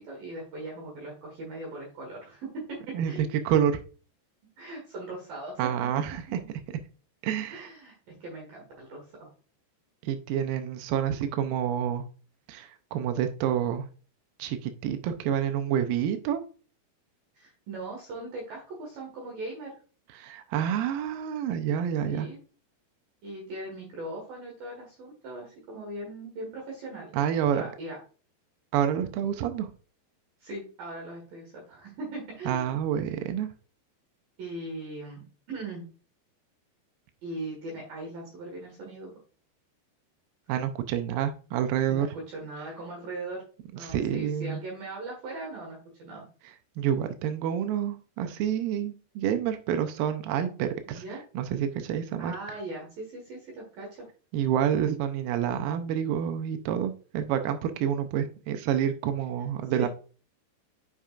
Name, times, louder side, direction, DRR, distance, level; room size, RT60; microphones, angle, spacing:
voice 1, 0.0-3.4 4.6-5.9 6.4-6.5 7.5-9.3 17.3-19.7 22.1-22.4 23.2-27.2 27.5-28.0 30.4-32.8 34.4-35.9 37.2-39.2 41.9-43.4 43.7-46.2 50.9-51.2 52.2-54.0 59.8-59.9, right 2 dB, 60° right, -1 dB, 3.1 m, -39 dB
voice 2, 2.9-3.8 5.6-6.2 7.2-7.7 10.0-12.0 12.5-13.9 14.4-16.4 20.2-22.3 27.1-27.6 28.7-29.7 32.5-33.5 40.5-42.1 43.8-44.6 46.8-51.0 51.3-52.4 54.3-59.9, right 9 dB, 85° right, 8 dB, 2.0 m, -28 dB
8.2 x 5.1 x 2.4 m, 0.38 s
omnidirectional pair, 4.9 m